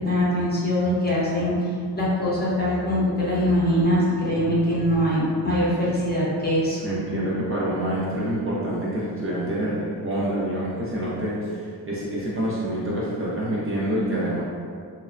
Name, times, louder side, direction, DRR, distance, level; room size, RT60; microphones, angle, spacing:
voice 1, 0.0-1.5 2.0-6.8, equal, 25° left, -8 dB, 0.7 m, -22 dB
voice 2, 6.8-14.4, right 1 dB, 35° right, -7 dB, 0.5 m, -27 dB
3.0 x 2.0 x 2.4 m, 2.2 s
wide cardioid pair, 110°, 40 cm